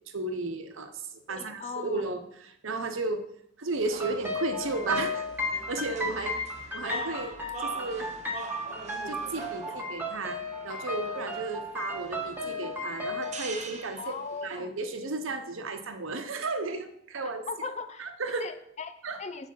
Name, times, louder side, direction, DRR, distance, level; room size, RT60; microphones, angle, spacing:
voice 1, 0.1-1.0 1.3-3.3 3.6-6.4 6.7-8.1 9.1-14.1 14.4-17.5 18.0-18.4 19.0-19.2, right 3 dB, 70° right, 8 dB, 0.9 m, -34 dB
voice 2, 1.3-2.0 9.7-9.9 14.0-14.7 17.5-18.1 18.4-19.5, left 4 dB, 35° left, 10 dB, 0.5 m, -38 dB
sound 1, 3.8-14.6, right 3 dB, 35° right, 0.7 m, -43 dB
sound 2, 4.0-13.3, left 2 dB, 10° right, 1.2 m, -34 dB
7.5 x 5.0 x 5.7 m, 0.73 s
head